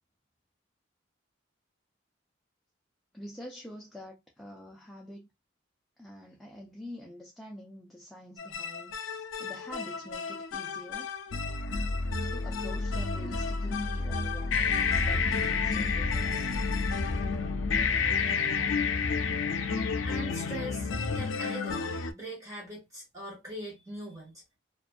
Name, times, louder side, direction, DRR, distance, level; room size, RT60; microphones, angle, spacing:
voice 1, 3.1-5.3 6.0-11.1 12.2-16.5, left 1 dB, ahead, 0.3 m, -46 dB
sound 1, 8.4-22.1, left 4 dB, 80° left, 0.4 m, -30 dB
voice 2, 20.1-21.9 22.1-24.4, equal, 15° right, 0.8 m, -41 dB
2.4 x 2.3 x 2.4 m
head